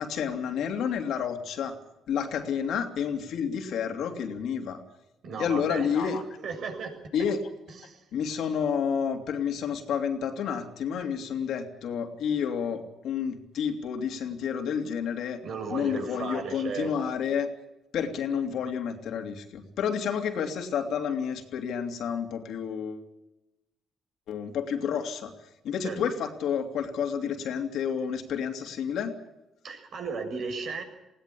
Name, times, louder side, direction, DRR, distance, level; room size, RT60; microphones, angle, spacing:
voice 1, 0.0-1.7 2.1-4.8 5.4-6.2 7.1-7.4 8.1-15.4 15.7-17.5 17.9-23.0 24.3-25.3 25.6-29.1, left 7 dB, 75° left, 5 dB, 3.0 m, -30 dB
voice 2, 5.2-6.1 6.4-6.9 7.8-8.0 15.4-16.9 25.8-26.0 29.6-30.8, right 5 dB, 65° right, 5 dB, 7.0 m, -35 dB
20.5 x 17.0 x 8.6 m, 0.93 s
cardioid pair, 90°, 0 cm